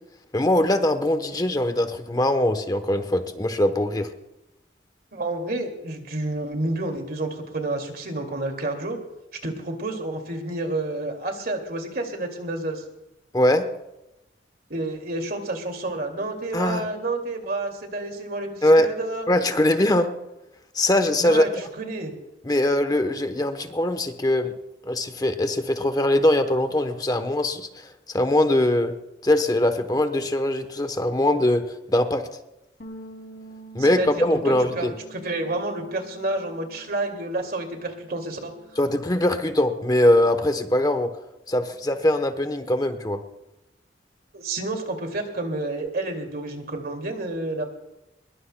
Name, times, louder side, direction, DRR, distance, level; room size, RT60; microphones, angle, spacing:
voice 1, 0.3-4.1 13.3-13.7 16.5-16.8 18.6-18.9 19.3-20.1 20.7-21.5 22.4-24.5 24.9-28.9 29.2-31.6 31.9-32.2 33.7-34.9 38.8-41.1 41.5-43.2, left 1 dB, 20° left, 8 dB, 0.9 m, -21 dB
voice 2, 5.1-9.0 9.4-12.8 14.7-19.3 21.2-21.5 21.8-22.1 33.8-38.5 44.3-47.6, right 2 dB, 55° right, 4 dB, 2.3 m, -30 dB
sound 1, 32.8-37.4 37.6-39.0, right 2 dB, 60° left, 2.4 m, -47 dB
22.0 x 21.5 x 2.2 m, 0.95 s
head